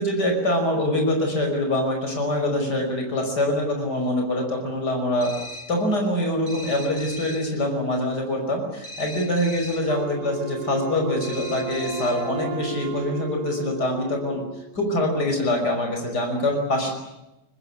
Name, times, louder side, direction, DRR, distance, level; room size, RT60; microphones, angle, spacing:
voice 1, 0.0-5.3 5.7-14.4 14.7-16.9, left 1 dB, 85° left, 3 dB, 6.1 m, -24 dB
sound 1, 5.2-5.8 6.5-7.6 8.8-10.0 11.2-12.3, left 1 dB, 60° left, 4.2 m, -39 dB
Wind instrument woodwind instrument, 9.9-14.9, right 8 dB, 75° right, 1.7 m, -35 dB
24.5 x 20.0 x 9.8 m, 0.95 s
omnidirectional pair, 1.7 m